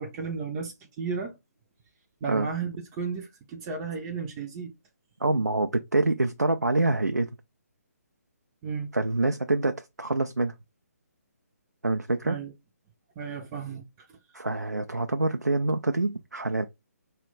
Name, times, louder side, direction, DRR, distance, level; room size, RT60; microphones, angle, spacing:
voice 1, 0.0-1.4 2.2-4.7 8.6-8.9 12.2-12.5 13.2-14.1, right 5 dB, 15° right, 0.4 m, -34 dB
voice 2, 5.2-7.3 8.9-10.5 11.8-12.4 14.3-16.7, right 2 dB, 85° right, 0.4 m, -26 dB
4.3 x 2.2 x 3.6 m
figure-of-eight pair, 140°, 9 cm